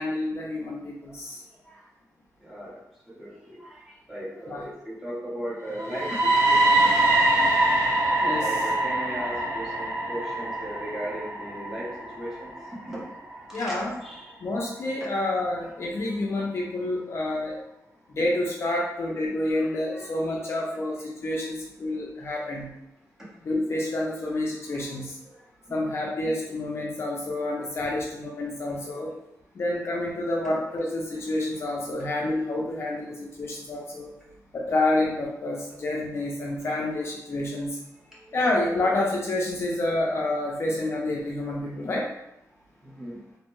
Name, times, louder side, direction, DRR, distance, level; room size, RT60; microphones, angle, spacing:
voice 1, 0.0-1.4 4.5-4.6 8.2-8.5 13.5-13.9 14.4-17.6 18.1-22.7 23.4-25.2 25.7-29.1 29.6-34.1 34.5-37.8 38.3-42.0, left 2 dB, 40° left, -3 dB, 0.4 m, -28 dB
voice 2, 2.4-2.8 3.1-3.8 4.1-7.0 8.4-13.0 13.5-14.3 19.5-20.8 21.3-21.4 24.6-24.8 25.3-25.4 25.7-25.8 38.1-38.4 38.7-39.1 42.8-43.2, equal, 5° right, -7 dB, 0.8 m, -38 dB
sound 1, 5.7-13.6, right 2 dB, 50° right, 0.8 m, -24 dB
2.5 x 2.1 x 3.0 m, 0.83 s
wide cardioid pair, 170°, 6 cm